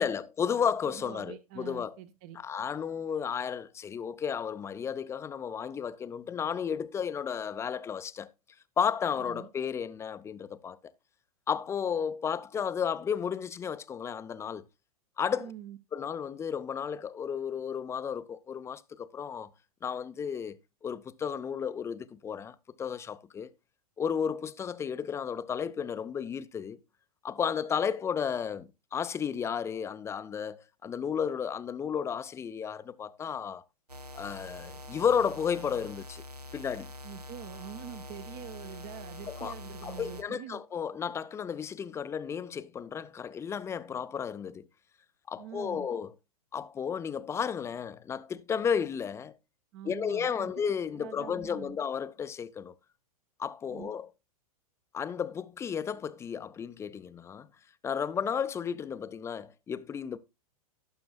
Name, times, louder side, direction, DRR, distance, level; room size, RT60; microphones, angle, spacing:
voice 1, 0.0-1.9 2.4-8.3 8.8-10.8 11.5-14.6 15.2-15.5 15.9-19.5 19.8-20.6 20.8-23.5 24.0-26.8 27.2-33.6 34.1-36.2 36.5-36.9 39.3-39.5 39.8-44.6 45.3-46.1 46.5-49.4 49.8-52.7 53.4-54.1 54.9-57.5 57.8-60.2, left 7 dB, 15° left, 0.5 m, -33 dB
voice 2, 0.8-2.4 9.2-9.5 15.4-15.8 37.0-40.6 45.4-45.9 49.7-50.5 50.9-51.8 53.7-53.9, right 12 dB, 35° right, 0.7 m, -45 dB
sound 1, 33.9-40.2, left 1 dB, 90° right, 0.7 m, -45 dB
17.5 x 6.9 x 2.3 m
figure-of-eight pair, 100°, 20 cm